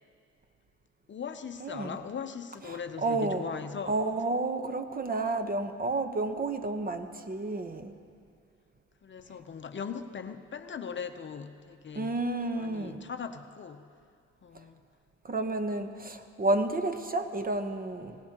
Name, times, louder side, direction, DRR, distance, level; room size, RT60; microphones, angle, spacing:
voice 1, 1.1-3.9 9.0-12.2 12.6-13.9 14.4-14.8, left 6 dB, 40° left, 8 dB, 0.7 m, -39 dB
voice 2, 1.6-2.0 2.7-3.4 3.9-7.9 11.9-13.0 15.2-18.2, right 2 dB, 30° right, 8 dB, 1.0 m, -31 dB
22.0 x 19.0 x 3.0 m, 2.3 s
cardioid pair, 90°, 30 cm